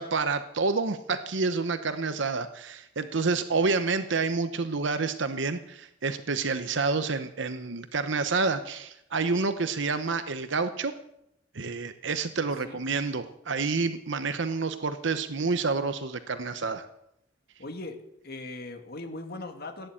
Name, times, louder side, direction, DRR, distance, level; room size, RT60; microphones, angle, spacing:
voice 1, 0.0-10.9 11.5-16.9, right 4 dB, 70° right, 10 dB, 0.9 m, -28 dB
voice 2, 17.6-18.0 18.2-19.9, left 2 dB, 55° left, 5 dB, 2.2 m, -39 dB
16.5 x 10.0 x 8.6 m, 0.81 s
head